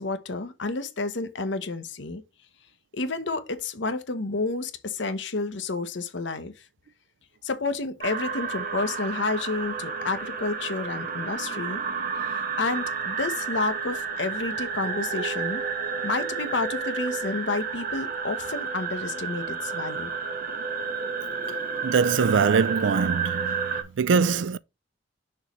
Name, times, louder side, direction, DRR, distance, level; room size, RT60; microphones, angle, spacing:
voice 1, 0.0-2.2 2.9-6.5 7.4-11.8 12.2-15.6 16.0-20.1, left 3 dB, 75° left, 1.0 m, -30 dB
sound 1, 8.0-23.8, right 5 dB, 50° right, 1.1 m, -31 dB
voice 2, 21.8-24.6, right 5 dB, 80° right, 0.4 m, -23 dB
6.4 x 3.1 x 5.1 m
head